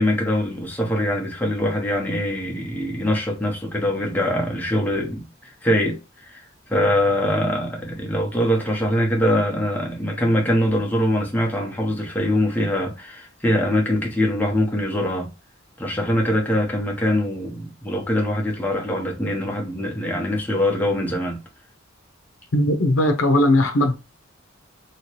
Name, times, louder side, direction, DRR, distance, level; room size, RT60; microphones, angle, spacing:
voice 1, 0.0-6.4 6.7-15.3 15.8-21.4, left 1 dB, 10° left, 0.8 m, -23 dB
voice 2, 22.5-24.0, left 1 dB, 85° left, 0.6 m, -18 dB
2.9 x 2.9 x 3.0 m
head